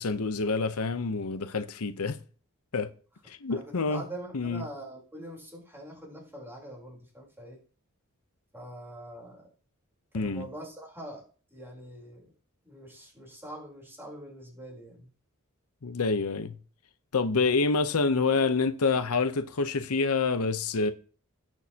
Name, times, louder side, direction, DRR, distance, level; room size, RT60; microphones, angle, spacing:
voice 1, 0.0-2.2 2.7-2.9 3.3-4.0 4.3-4.6 10.1-10.5 15.8-16.6 17.1-20.9, left 4 dB, 90° left, 0.8 m, -27 dB
voice 2, 3.5-7.6 8.5-9.5 10.1-11.2 11.5-12.3 12.6-15.1, right 1 dB, 10° right, 3.7 m, -44 dB
17.0 x 6.3 x 2.9 m
head